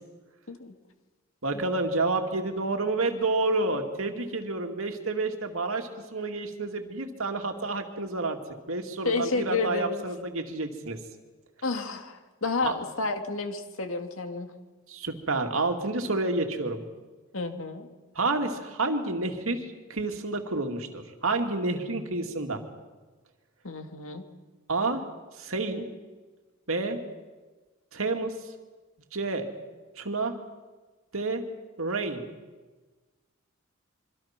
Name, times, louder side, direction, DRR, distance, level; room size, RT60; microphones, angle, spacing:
voice 1, 1.4-8.4 8.7-11.0 12.6-12.7 14.9-16.8 18.2-19.6 19.9-22.6 24.7-25.0 25.4-25.9 26.7-27.0 27.9-28.3 29.1-29.5 30.0-30.3 31.1-31.5 31.8-32.2, right 3 dB, 75° right, 4 dB, 2.5 m, -29 dB
voice 2, 9.0-10.1 11.6-14.5 17.3-17.9 23.6-24.2, left 3 dB, 70° left, 6 dB, 2.2 m, -31 dB
26.0 x 25.0 x 6.0 m, 1.3 s
head